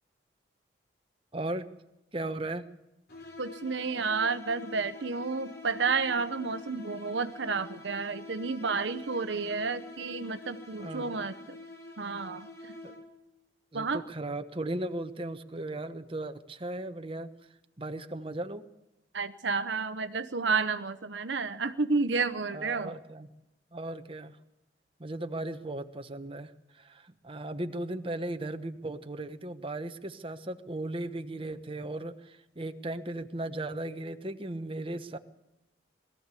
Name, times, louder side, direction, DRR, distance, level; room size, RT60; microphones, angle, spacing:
voice 1, 1.3-1.7 2.1-2.6 10.8-11.1 12.8-13.0 13.7-17.5 17.8-18.6 22.5-23.3 23.7-24.4 25.0-35.2, right 1 dB, 30° right, 8 dB, 1.1 m, -37 dB
sound 1, 3.1-13.3, left 2 dB, 55° left, 3.8 m, -46 dB
voice 2, 3.4-11.6 12.0-12.8 13.7-14.0 19.1-23.0, right 4 dB, 70° right, 12 dB, 1.0 m, -31 dB
21.5 x 14.5 x 8.3 m, 0.91 s
head